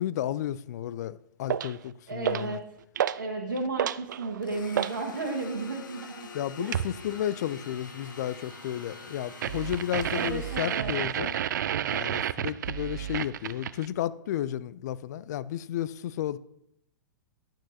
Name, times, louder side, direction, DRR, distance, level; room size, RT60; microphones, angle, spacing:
voice 1, 0.0-2.6 6.3-11.4 11.9-16.4, left 11 dB, 60° left, 0.4 m, -32 dB
sound 1, 1.5-1.8 2.2-2.6 3.0-3.3 3.6-5.0 6.7-7.0 9.4-13.9, right 10 dB, 70° right, 0.4 m, -30 dB
voice 2, 2.1-2.6 3.2-6.3 6.6-6.9 10.1-10.9, right 3 dB, 85° right, 1.4 m, -33 dB
Domestic sounds home sounds, 4.4-11.5, left 4 dB, 75° left, 1.2 m, -46 dB
11.5 x 8.7 x 2.8 m
hypercardioid pair, 110°, 10 cm